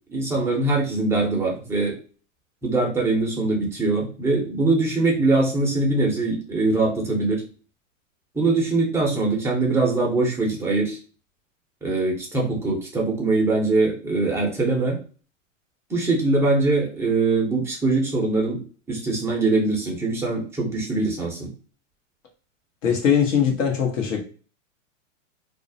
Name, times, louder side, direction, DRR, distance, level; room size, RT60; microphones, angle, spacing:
voice 1, 0.1-2.0 2.6-7.4 8.3-11.0 11.8-15.0 15.9-18.6 18.9-21.5, right 3 dB, 5° right, 0.5 m, -22 dB
voice 2, 22.8-24.2, left 7 dB, 70° left, 1.0 m, -21 dB
2.3 x 2.0 x 2.6 m
hypercardioid pair, 125°, 39 cm